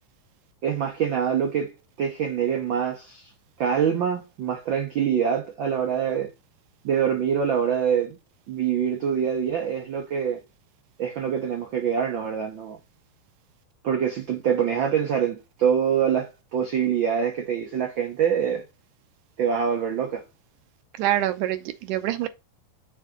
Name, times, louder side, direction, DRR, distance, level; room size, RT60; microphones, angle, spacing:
voice 1, 0.6-3.3 3.6-6.3 6.8-8.2 8.5-10.4 11.0-12.8 13.8-18.6 19.4-20.2, right 8 dB, 60° right, 1.2 m, -25 dB
voice 2, 21.0-22.3, right 13 dB, 90° right, 2.2 m, -25 dB
6.5 x 3.6 x 5.2 m
omnidirectional pair, 3.6 m